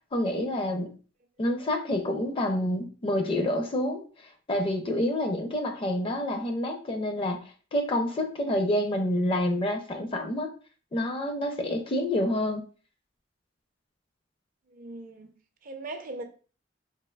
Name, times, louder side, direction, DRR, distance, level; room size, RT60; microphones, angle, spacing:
voice 1, 0.1-1.0 1.4-4.0 4.5-10.5 10.9-12.6, left 1 dB, 30° left, 0.4 m, -28 dB
voice 2, 14.7-15.3 15.6-16.2, right 2 dB, 45° right, 0.5 m, -39 dB
3.3 x 2.6 x 2.2 m
head